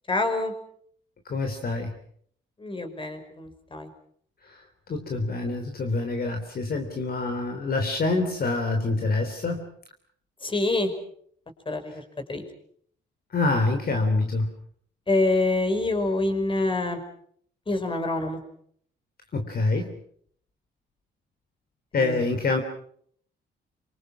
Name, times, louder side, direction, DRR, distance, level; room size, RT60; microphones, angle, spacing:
voice 1, 0.1-0.5 2.6-3.9 10.4-10.9 11.7-12.0 12.3-12.4 15.1-17.0 17.7-18.4 22.0-22.3, left 2 dB, 25° left, 7 dB, 5.3 m, -26 dB
voice 2, 1.2-1.9 4.4-9.7 13.3-14.5 19.3-19.9 21.9-22.6, left 3 dB, 50° left, 5 dB, 3.4 m, -26 dB
26.5 x 25.0 x 6.1 m, 0.62 s
cardioid pair, 90°, 20 cm